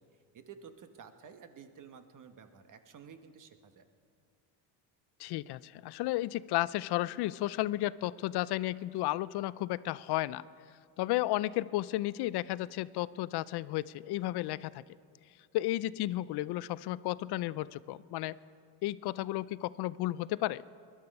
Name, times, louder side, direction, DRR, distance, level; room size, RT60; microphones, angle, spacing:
voice 1, 0.3-3.8, right 6 dB, 45° right, 8 dB, 1.3 m, -52 dB
voice 2, 5.2-10.4 11.0-14.8 15.5-18.4 18.8-20.6, left 16 dB, 60° left, 19 dB, 0.5 m, -33 dB
20.5 x 11.5 x 5.4 m, 2.2 s
cardioid pair, 100°, 45 cm